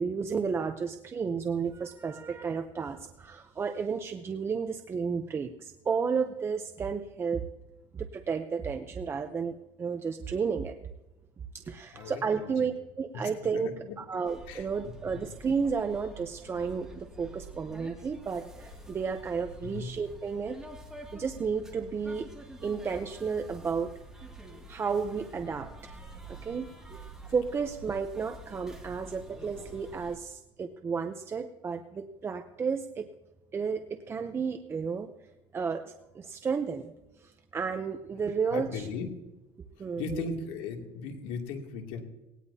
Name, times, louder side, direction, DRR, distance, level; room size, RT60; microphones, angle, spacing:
voice 1, 0.0-7.4 7.9-10.7 11.5-20.6 21.1-22.3 22.6-23.9 24.7-26.0 26.3-33.1 33.5-35.1 35.5-36.9 37.2-38.9 39.8-40.2, right 5 dB, 20° right, 7 dB, 0.7 m, -32 dB
voice 2, 11.9-12.7 13.5-14.0 14.5-14.7 15.1-15.2 19.6-19.9 38.5-39.1 40.0-42.0, left 5 dB, 75° left, 1 dB, 2.6 m, -37 dB
sound 1, 14.2-30.2, right 1 dB, 5° right, 2.3 m, -47 dB
19.0 x 18.5 x 2.8 m, 1.0 s
cardioid pair, 155°, 12 cm